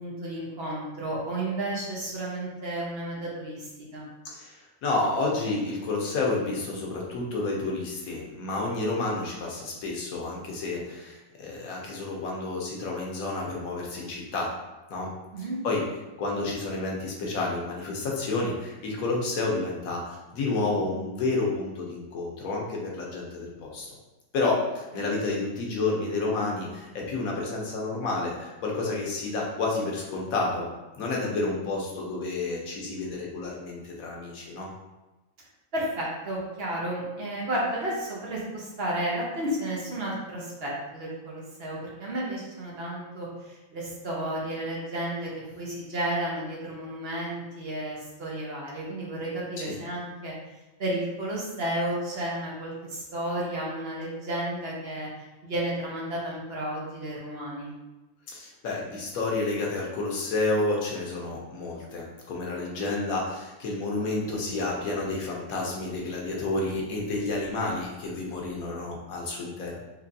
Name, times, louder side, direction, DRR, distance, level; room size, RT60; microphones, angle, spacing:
voice 1, 0.0-4.1 15.3-15.6 25.0-25.1 35.7-45.3 45.6-50.3 50.8-55.1 55.4-57.7, right 1 dB, 50° right, -5 dB, 1.0 m, -32 dB
voice 2, 4.2-14.5 14.9-15.1 15.6-15.8 16.2-23.9 24.3-30.7 31.0-34.7 49.6-49.7 58.3-69.8, left 3 dB, 90° left, -2 dB, 1.3 m, -30 dB
4.1 x 2.6 x 2.6 m, 1.1 s
omnidirectional pair, 1.4 m